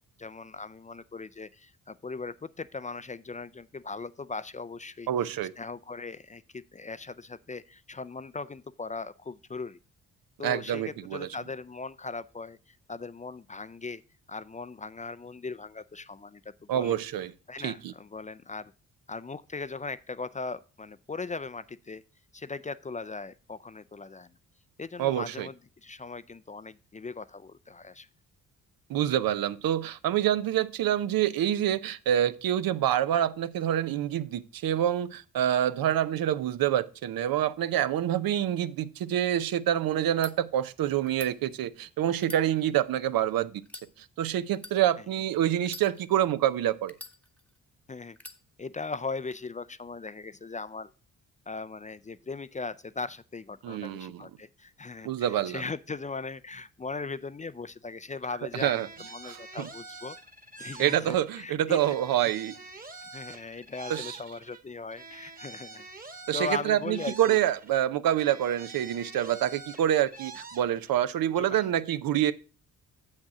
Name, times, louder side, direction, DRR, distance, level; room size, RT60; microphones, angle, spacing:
voice 1, 0.2-5.3 5.6-9.8 10.4-14.0 14.3-17.0 17.5-18.7 19.1-22.0 22.3-24.3 24.8-28.1 47.9-48.2 48.6-50.9 51.5-60.2 60.6-62.0 62.2-62.3 63.0-65.9 66.3-67.4 71.4-71.7, left 4 dB, 20° left, 0.4 m, -39 dB
voice 2, 5.1-5.5 10.4-11.3 16.7-17.3 17.6-17.9 25.0-25.5 28.9-43.6 44.0-46.9 53.6-54.2 55.0-55.6 58.5-58.9 59.2-59.7 60.8-62.5 63.9-64.2 66.3-72.3, right 11 dB, 75° right, 0.7 m, -27 dB
sound 1, 40.2-40.3 41.0-41.3 42.1-43.1 43.6-43.9 44.5-44.8 45.6-46.3 46.9-47.6 48.2-48.4, left 1 dB, 5° left, 0.9 m, -45 dB
sound 2, 58.5-61.4 61.7-64.6 64.9-67.8 68.1-71.0, right 4 dB, 25° right, 1.3 m, -46 dB
7.3 x 6.5 x 4.8 m
cardioid pair, 70°, 35 cm